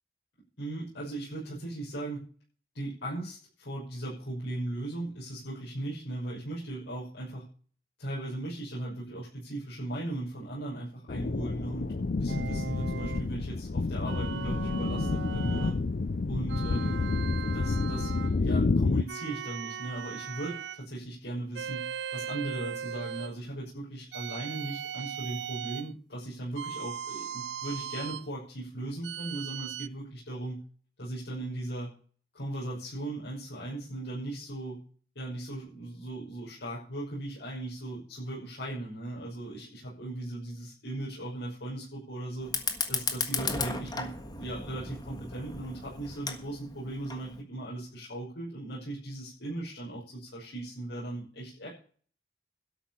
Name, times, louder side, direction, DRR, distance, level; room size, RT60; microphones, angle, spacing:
voice 1, 0.6-2.2 2.7-7.4 8.0-15.8 16.3-21.9 22.1-30.6 31.0-31.9 32.3-34.8 35.1-42.5 42.9-51.7, right 1 dB, 90° left, -6 dB, 6.0 m, -38 dB
sound 1, 11.1-19.0, left 3 dB, 50° left, 0.5 m, -29 dB
sound 2, 12.3-13.3 14.1-15.8 16.5-18.4 19.1-20.8 21.5-23.4 24.1-25.9 26.6-28.3 29.0-29.9, right 8 dB, 80° right, 0.5 m, -38 dB
Fire, 42.4-47.4, left 4 dB, 25° left, 1.5 m, -35 dB
12.5 x 6.3 x 8.5 m, 0.44 s
head